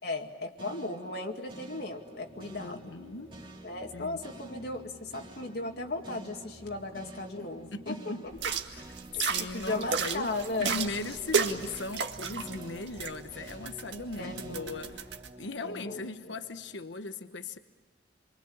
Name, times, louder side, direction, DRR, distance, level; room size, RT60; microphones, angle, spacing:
voice 1, 0.0-3.0 3.6-8.1 9.1-10.9 14.1-15.0 15.6-16.4, left 2 dB, 60° left, 1 dB, 2.2 m, -36 dB
sound 1, 0.6-16.9, right 1 dB, 25° right, 2.2 m, -49 dB
voice 2, 2.6-3.4 3.9-4.2 7.4-8.2 8.7-10.3 10.6-15.0 15.4-17.6, left 3 dB, 80° left, 9 dB, 1.2 m, -38 dB
sound 2, 8.3-15.3, right 5 dB, 70° right, 1.9 m, -34 dB
28.0 x 24.5 x 8.7 m, 1.3 s
head